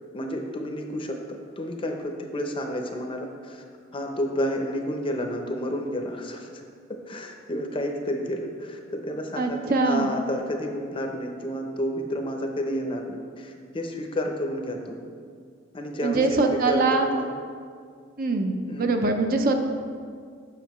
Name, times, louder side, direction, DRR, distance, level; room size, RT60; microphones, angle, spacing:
voice 1, 0.1-3.6 3.9-6.6 6.9-15.0 15.7-17.3 18.7-18.9, equal, 25° left, 3 dB, 0.6 m, -30 dB
voice 2, 9.4-10.1 16.0-17.1 18.2-19.6, right 3 dB, 45° right, 4 dB, 0.5 m, -23 dB
7.4 x 6.4 x 3.0 m, 2.1 s
head